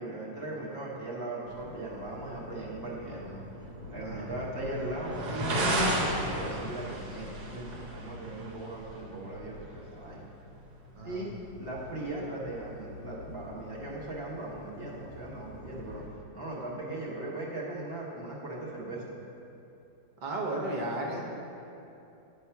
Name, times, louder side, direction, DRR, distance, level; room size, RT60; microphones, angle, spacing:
voice 1, 0.0-3.4 3.9-5.2 5.4-10.2 11.0-11.3 11.6-16.0 16.3-19.1, right 2 dB, 40° right, -4 dB, 1.1 m, -38 dB
sound 1, 1.5-16.1, right 1 dB, 60° right, 1.5 m, -37 dB
voice 2, 20.2-21.2, right 1 dB, 80° right, -3 dB, 0.4 m, -34 dB
9.3 x 3.3 x 5.6 m, 2.8 s
omnidirectional pair, 2.0 m